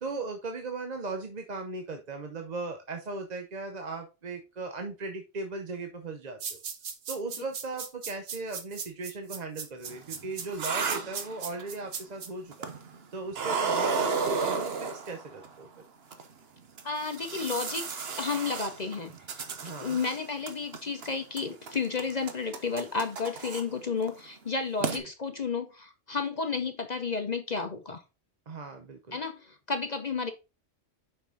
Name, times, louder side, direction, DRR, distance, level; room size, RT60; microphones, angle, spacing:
voice 1, 0.0-6.4 7.1-12.7 13.1-15.7 19.6-20.0 24.9-25.0 28.5-29.2, right 3 dB, 40° right, 5 dB, 0.8 m, -37 dB
sound 1, 6.4-12.3, right 6 dB, 80° right, 1.4 m, -37 dB
sound 2, 9.9-11.8 12.5-13.0 13.3-15.5 16.1-16.2 16.8-20.2 20.5-21.1 21.4-23.6 24.0-24.2 24.5-24.6 24.8-25.0, right 5 dB, 60° right, 1.1 m, -33 dB
voice 2, 16.8-19.4 19.8-28.0 29.1-30.3, left 5 dB, 40° left, 7 dB, 0.7 m, -32 dB
5.9 x 5.7 x 3.8 m, 0.28 s
omnidirectional pair, 1.3 m